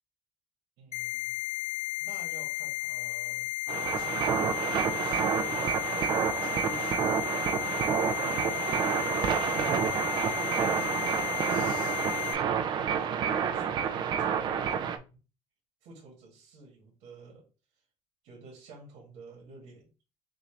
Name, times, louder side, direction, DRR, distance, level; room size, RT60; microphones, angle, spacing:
voice 1, 0.8-1.3 2.0-9.7 10.2-15.1 15.8-17.4 18.2-19.9, right 3 dB, 85° right, -2 dB, 2.1 m, -50 dB
sound 1, 0.9-12.3, left 16 dB, 70° left, 0.8 m, -34 dB
sound 2, 3.7-15.0, right 7 dB, 40° right, 0.5 m, -29 dB
6.0 x 2.7 x 3.2 m, 0.32 s
cardioid pair, 170°, 12 cm